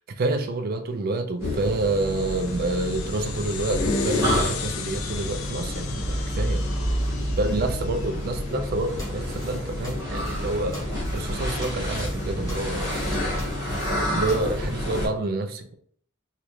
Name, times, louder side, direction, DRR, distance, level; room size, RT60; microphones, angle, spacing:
voice 1, 0.2-6.6 7.4-10.8 11.1-13.1 14.1-15.7, right 2 dB, 45° right, 0.4 m, -28 dB
sound 1, 1.4-15.1, left 1 dB, 15° right, 1.3 m, -28 dB
sound 2, 1.6-8.4, left 8 dB, 85° left, 0.4 m, -38 dB
sound 3, 8.9-14.4, equal, 15° left, 1.0 m, -41 dB
3.1 x 2.4 x 3.0 m
head